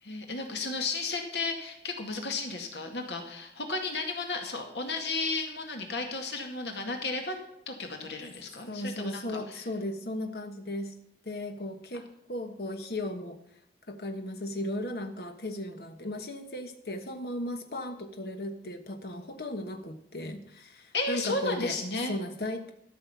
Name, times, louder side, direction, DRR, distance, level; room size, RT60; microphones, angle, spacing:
voice 1, 0.0-7.4 7.7-9.6 20.9-22.1, left 3 dB, 75° left, 3 dB, 2.1 m, -33 dB
voice 2, 8.7-11.0 11.2-13.4 13.9-21.8 22.1-22.7, left 1 dB, 60° left, 5 dB, 1.2 m, -36 dB
13.0 x 6.5 x 8.4 m, 0.77 s
head